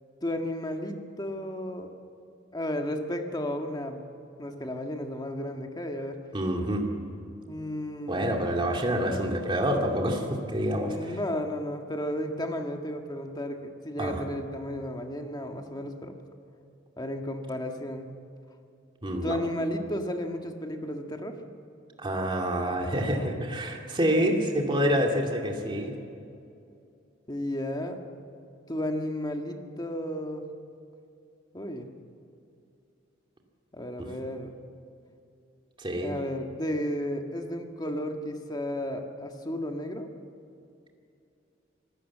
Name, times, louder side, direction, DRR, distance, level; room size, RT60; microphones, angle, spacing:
voice 1, 0.2-1.9 2.5-4.0 4.4-6.2 7.5-8.6 10.8-16.1 17.0-18.1 19.2-21.4 27.3-28.0 28.7-30.4 31.5-31.9 33.7-34.5 36.0-40.1, left 1 dB, 20° left, 4 dB, 1.7 m, -33 dB
voice 2, 6.3-6.9 8.1-11.2 14.0-14.2 19.0-19.4 22.0-26.0 35.8-36.1, equal, 25° right, 1 dB, 2.5 m, -27 dB
25.5 x 16.0 x 7.4 m, 2.6 s
head